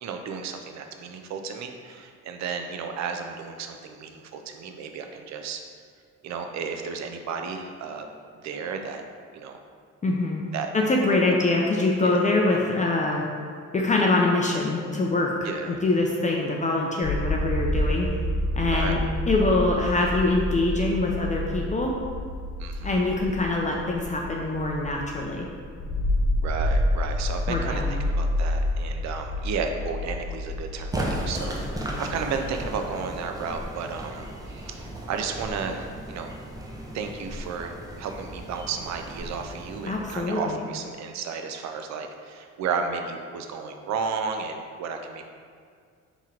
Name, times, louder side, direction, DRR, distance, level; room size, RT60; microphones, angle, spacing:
voice 1, 0.0-5.6 6.2-8.1 8.4-9.0 9.3-9.6 10.5-10.7 11.3-11.4 12.0-12.2 15.4-15.7 18.7-19.0 22.6-22.9 26.4-36.3 36.9-45.2, right 5 dB, 65° right, 5 dB, 0.5 m, -33 dB
voice 2, 10.0-10.4 10.7-13.2 13.7-15.3 15.7-18.1 18.5-19.0 19.3-22.0 22.8-25.5 27.5-28.0 39.9-40.6, left 2 dB, 25° left, -1 dB, 0.4 m, -24 dB
sound 1, 17.0-32.7, left 1 dB, 45° left, 0.9 m, -29 dB
sound 2, 30.9-40.7, right 1 dB, 10° right, 0.6 m, -36 dB
3.6 x 3.0 x 4.4 m, 2.1 s
cardioid pair, 90°, 30 cm